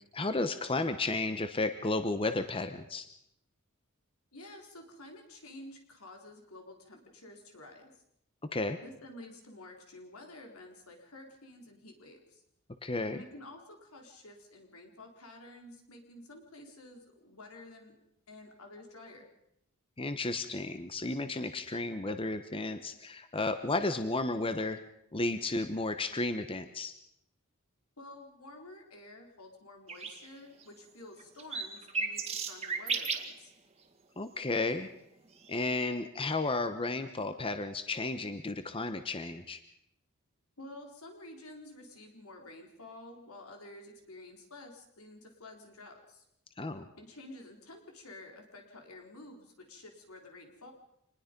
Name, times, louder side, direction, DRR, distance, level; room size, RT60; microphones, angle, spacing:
voice 1, 0.1-3.0 8.5-8.8 12.8-13.2 20.0-24.8 25.1-26.9 34.2-34.9 35.5-39.6 46.6-46.9, left 2 dB, 25° left, 9 dB, 1.0 m, -33 dB
voice 2, 4.3-8.0 8.8-12.4 13.1-18.0 18.3-19.3 28.0-33.5 40.6-46.2 47.0-50.7, left 2 dB, 80° left, 2 dB, 4.0 m, -50 dB
sound 1, 29.9-30.2 30.6-30.7 31.2-33.3 35.4-35.6, right 5 dB, 30° right, 1.9 m, -34 dB
26.0 x 20.0 x 5.3 m, 0.77 s
head